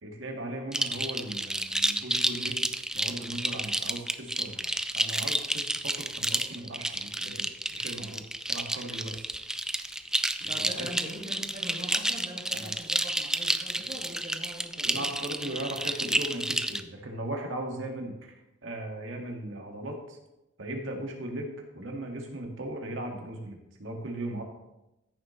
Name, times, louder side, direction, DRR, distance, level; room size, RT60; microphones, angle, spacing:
voice 1, 0.0-4.7 4.9-9.3 10.4-10.9 12.5-12.7 14.8-18.4 18.6-20.2 20.6-24.4, right 1 dB, 80° right, 1 dB, 1.9 m, -38 dB
sound 1, 0.7-16.8, right 1 dB, 5° right, 0.3 m, -30 dB
voice 2, 10.5-15.8, right 1 dB, 30° right, -4 dB, 2.8 m, -43 dB
14.0 x 6.9 x 3.1 m, 0.93 s
head